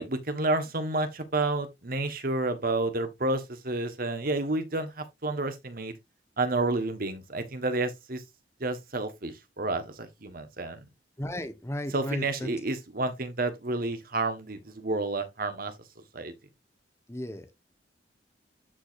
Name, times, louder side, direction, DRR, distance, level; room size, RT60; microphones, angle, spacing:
voice 1, 0.0-5.9 6.4-8.2 8.6-10.8 11.9-15.7 16.1-16.3, right 2 dB, 55° right, 1.4 m, -30 dB
voice 2, 11.2-12.5 17.1-17.5, equal, 15° left, 1.1 m, -34 dB
11.5 x 4.9 x 2.6 m
head